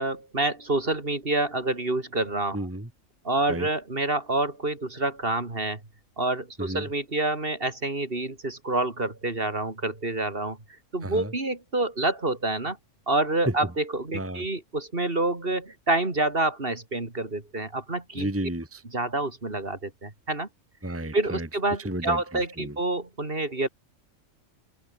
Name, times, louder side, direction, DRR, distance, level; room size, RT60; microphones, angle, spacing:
voice 1, 0.0-2.6 3.3-5.8 6.2-10.6 10.9-12.8 13.1-18.3 18.9-20.5 21.1-23.7, right 2 dB, 45° right, 3.4 m, -27 dB
voice 2, 2.5-2.9 3.5-3.7 6.6-6.9 11.0-11.3 13.5-13.6 14.1-14.4 18.2-18.8 20.8-21.5 21.8-22.2 22.6-22.8, right 1 dB, 10° right, 1.8 m, -31 dB
open air
omnidirectional pair, 1.4 m